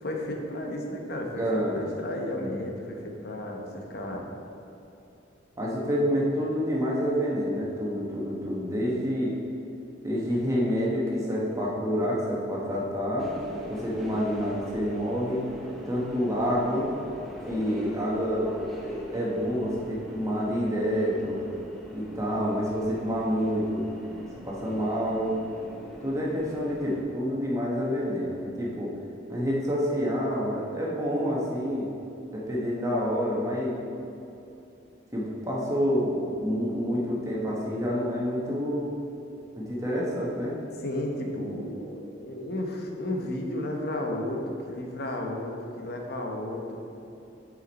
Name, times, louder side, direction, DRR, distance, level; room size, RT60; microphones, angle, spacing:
voice 1, 0.0-4.3 40.8-44.4 44.7-46.8, left 1 dB, 55° left, 1 dB, 0.9 m, -33 dB
voice 2, 1.4-1.8 5.6-9.3 10.0-13.3 13.7-15.4 15.8-16.9 17.5-18.5 19.1-21.4 21.9-23.9 24.4-25.4 26.0-28.9 29.3-31.9 32.3-33.8 35.1-38.9 39.6-40.5, equal, 15° right, -5 dB, 1.2 m, -28 dB
Subway metro underground, 13.2-27.0, equal, ahead, 0.7 m, -41 dB
7.3 x 5.1 x 4.1 m, 2.9 s
head